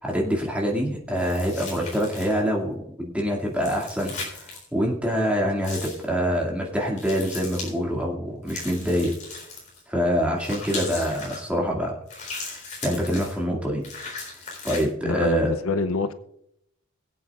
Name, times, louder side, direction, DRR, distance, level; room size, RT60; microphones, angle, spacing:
voice 1, 0.0-9.1 9.9-11.9 12.4-13.9 14.2-14.3 14.6-15.5, equal, 5° right, -2 dB, 2.2 m, -25 dB
sound 1, 1.1-2.5 3.5-4.6 5.6-6.0 7.0-7.7 8.5-9.8 10.4-11.4 12.1-13.4 13.8-14.8, left 3 dB, 35° left, 3.8 m, -37 dB
voice 2, 15.0-16.1, left 3 dB, 85° left, 10 dB, 0.7 m, -26 dB
22.0 x 8.4 x 2.5 m, 0.76 s
head